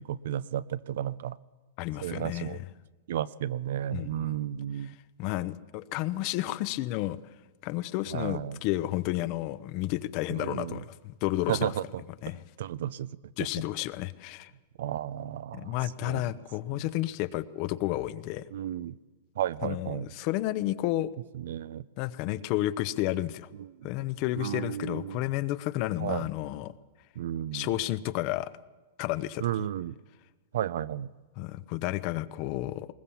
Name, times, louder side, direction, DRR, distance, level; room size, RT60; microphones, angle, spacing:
voice 1, 0.0-1.4 2.0-2.6 3.1-4.9 8.1-8.6 10.3-10.8 11.5-12.0 12.6-13.1 14.8-15.8 16.0-16.2 18.5-19.0 19.4-20.1 21.3-21.9 23.6-23.9 24.4-25.2 26.0-26.3 27.2-27.7 29.4-30.0 30.5-31.1, right 11 dB, 70° right, 18 dB, 0.6 m, -33 dB
voice 2, 1.8-2.6 3.9-4.3 5.2-7.2 7.6-11.7 12.2-12.4 13.4-14.5 15.5-18.5 19.6-21.1 22.0-23.5 23.8-26.7 27.5-28.5 29.0-29.5 31.4-32.9, left 16 dB, 40° left, 16 dB, 0.7 m, -31 dB
20.5 x 20.0 x 7.1 m, 1.3 s
supercardioid pair, 160°, 0 cm